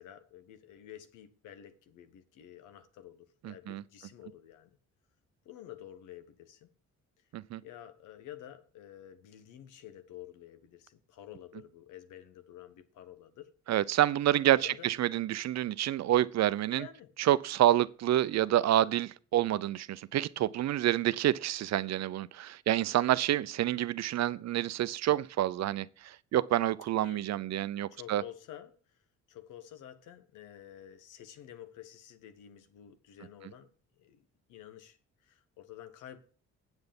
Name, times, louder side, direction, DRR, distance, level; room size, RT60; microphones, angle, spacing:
voice 1, 0.0-4.8 5.4-6.7 7.6-13.5 14.6-14.9 16.7-17.1 27.0-27.3 27.9-29.0 29.3-33.7 34.0-36.2, left 11 dB, 90° left, 1.3 m, -50 dB
voice 2, 3.4-3.8 7.3-7.6 13.7-16.9 17.2-28.2, right 13 dB, 60° right, 0.6 m, -28 dB
8.0 x 8.0 x 5.3 m
cardioid pair, 90°, 30 cm